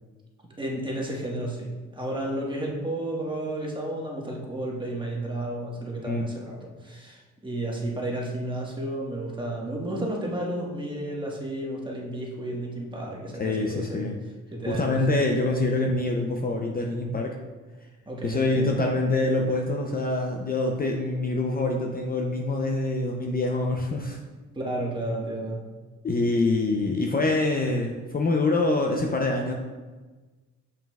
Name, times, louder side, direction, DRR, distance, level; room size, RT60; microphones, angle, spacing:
voice 1, 0.6-14.1 14.5-15.4 18.0-18.8 24.5-25.6, right 1 dB, 15° right, -2 dB, 1.4 m, -32 dB
voice 2, 13.4-14.2 14.7-17.4 18.2-24.2 26.0-29.5, left 2 dB, 30° left, 1 dB, 0.6 m, -25 dB
7.3 x 5.7 x 2.3 m, 1.3 s
cardioid pair, 90°, 30 cm